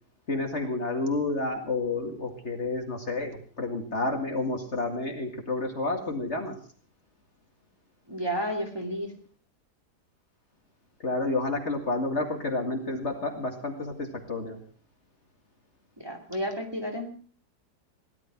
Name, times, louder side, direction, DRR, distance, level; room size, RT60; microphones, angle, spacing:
voice 1, 0.3-6.5 11.0-14.6, left 2 dB, 45° left, 4 dB, 2.3 m, -30 dB
voice 2, 8.1-9.1 16.0-17.2, equal, 15° right, 2 dB, 2.7 m, -32 dB
17.5 x 12.0 x 5.8 m, 0.43 s
omnidirectional pair, 1.7 m